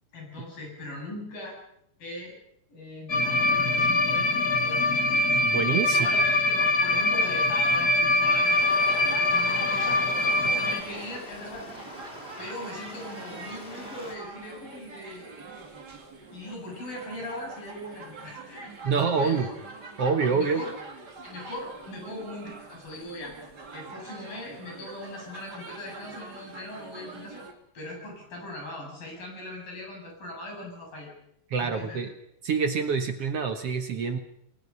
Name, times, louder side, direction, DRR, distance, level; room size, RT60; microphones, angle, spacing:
voice 1, 0.1-1.6 2.0-2.4 2.7-5.1 5.9-10.0 10.3-11.7 12.4-15.3 16.3-19.6 20.3-20.7 21.2-23.3 23.7-27.5 27.7-31.1 31.6-32.0, left 1 dB, 85° left, 0 dB, 9.1 m, -40 dB
sound 1, 3.1-10.8, left 2 dB, 45° left, 1.3 m, -23 dB
voice 2, 5.5-6.1 18.8-19.5 20.0-20.7 31.5-32.1 32.4-34.2, right 5 dB, 55° right, 6 dB, 1.9 m, -26 dB
Stream, 8.4-14.2, left 1 dB, 20° left, 2.3 m, -44 dB
sound 2, 8.7-27.5, right 4 dB, 30° right, 2.8 m, -44 dB
29.0 x 20.0 x 5.6 m, 0.75 s
omnidirectional pair, 3.9 m